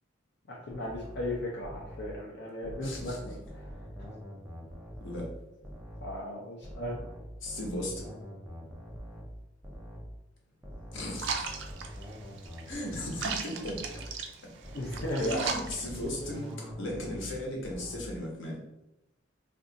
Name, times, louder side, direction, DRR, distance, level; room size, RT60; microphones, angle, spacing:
voice 1, 0.5-3.4 4.0-4.1 6.0-7.0 14.7-15.5, left 1 dB, 60° left, -4 dB, 0.5 m, -35 dB
sound 1, 0.7-2.2 2.6-5.4 5.6-6.1 6.6-10.2 10.6-13.4 13.6-14.1 14.6-17.4 17.6-18.2, equal, 10° right, 0.5 m, -44 dB
voice 2, 2.8-3.2 5.0-5.3 7.4-8.1 10.9-11.5 12.7-14.0 15.2-18.6, left 1 dB, 85° left, -1 dB, 0.9 m, -37 dB
sound 2, 11.1-16.5, right 5 dB, 70° right, 0.4 m, -38 dB
2.5 x 2.4 x 3.8 m, 0.93 s
head